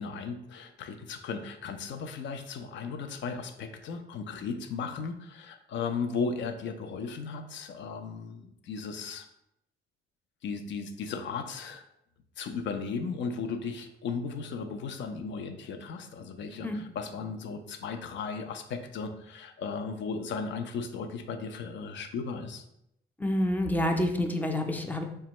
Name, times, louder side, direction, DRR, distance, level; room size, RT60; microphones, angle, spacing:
voice 1, 0.0-9.3 10.4-11.8 12.4-22.6, left 5 dB, 65° left, 7 dB, 0.5 m, -36 dB
voice 2, 23.2-25.0, left 1 dB, 10° left, 4 dB, 0.4 m, -28 dB
4.2 x 2.2 x 2.9 m, 0.80 s
cardioid pair, 90°, 20 cm